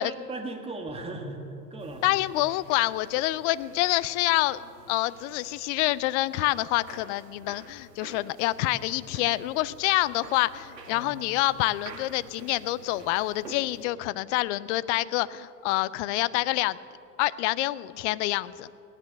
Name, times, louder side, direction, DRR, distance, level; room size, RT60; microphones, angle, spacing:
voice 1, 0.0-1.4 1.7-2.2 10.9-11.1, right 2 dB, 10° right, 4 dB, 1.7 m, -37 dB
sound 1, 1.8-13.8, right 3 dB, 85° right, 1.9 m, -50 dB
voice 2, 2.0-4.6 4.9-16.8 17.2-18.7, left 17 dB, 50° left, 18 dB, 0.5 m, -27 dB
18.0 x 10.5 x 6.6 m, 2.7 s
hypercardioid pair, 95°, 48 cm